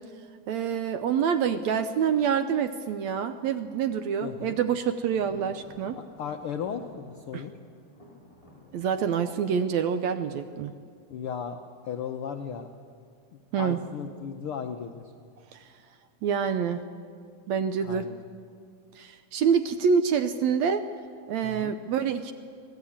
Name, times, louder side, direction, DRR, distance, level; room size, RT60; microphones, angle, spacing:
voice 1, 0.5-6.0 7.3-7.4 8.7-10.7 13.5-13.8 15.5-15.6 16.2-16.8 17.5-18.1 19.0-20.8 21.3-22.3, right 7 dB, 75° right, 9 dB, 1.7 m, -26 dB
voice 2, 4.2-4.6 6.0-7.5 11.1-12.7 13.3-15.1 17.8-18.2 21.4-21.8, left 7 dB, 85° left, 6 dB, 1.2 m, -36 dB
Thunder, 5.0-10.8, left 1 dB, 10° left, 6.0 m, -53 dB
26.0 x 18.0 x 8.7 m, 2.2 s
omnidirectional pair, 3.8 m